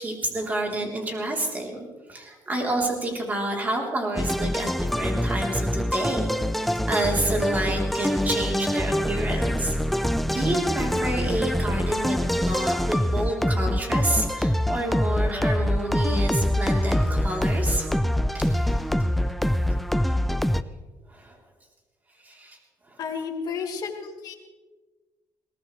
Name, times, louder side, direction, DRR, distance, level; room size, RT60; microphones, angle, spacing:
voice 1, 0.0-6.3 6.6-17.9 18.3-18.8 21.1-21.4 22.2-22.6 22.9-23.0, right 1 dB, 20° right, 0 dB, 3.5 m, -29 dB
sound 1, 4.2-20.6, equal, ahead, 0.5 m, -24 dB
voice 2, 23.0-24.3, left 6 dB, 60° left, 0 dB, 2.9 m, -32 dB
22.0 x 18.0 x 3.3 m, 1.3 s
cardioid pair, 145°, 8 cm